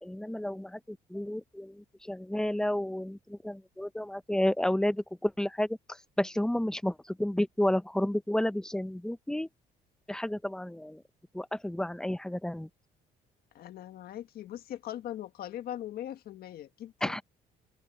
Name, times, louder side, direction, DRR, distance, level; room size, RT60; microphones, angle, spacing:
voice 1, 0.0-5.8 6.2-9.5 10.1-11.0 11.3-12.7 17.0-17.2, left 1 dB, 5° left, 0.8 m, -31 dB
voice 2, 13.5-17.1, left 12 dB, 65° left, 1.6 m, -40 dB
cardioid pair, 110°, 17 cm